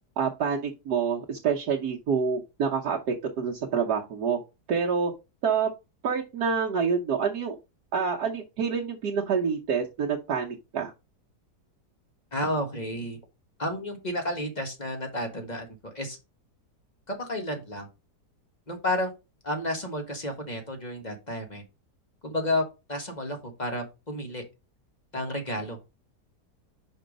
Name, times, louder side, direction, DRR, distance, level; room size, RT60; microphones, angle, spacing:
voice 1, 0.2-4.4 4.7-5.1 5.4-5.7 6.0-7.6 7.9-10.9, right 6 dB, 70° right, -2 dB, 1.4 m, -27 dB
voice 2, 12.3-13.2 13.6-16.2 17.1-17.9 18.7-19.1 19.4-21.6 22.2-22.6 22.9-24.4 25.1-25.8, left 1 dB, 25° left, 4 dB, 1.5 m, -31 dB
5.4 x 5.0 x 5.1 m, 0.26 s
omnidirectional pair, 1.8 m